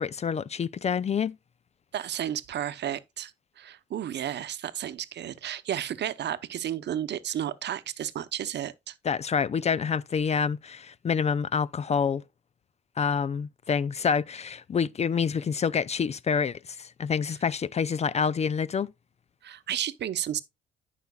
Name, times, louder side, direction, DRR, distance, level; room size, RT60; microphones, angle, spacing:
voice 1, 0.0-1.3 9.0-12.2 13.0-18.9, left 6 dB, 35° left, 0.4 m, -27 dB
voice 2, 1.9-3.3 3.6-8.9 19.4-20.4, right 10 dB, 60° right, 0.8 m, -32 dB
13.5 x 5.8 x 2.3 m
cardioid pair, 90°, 20 cm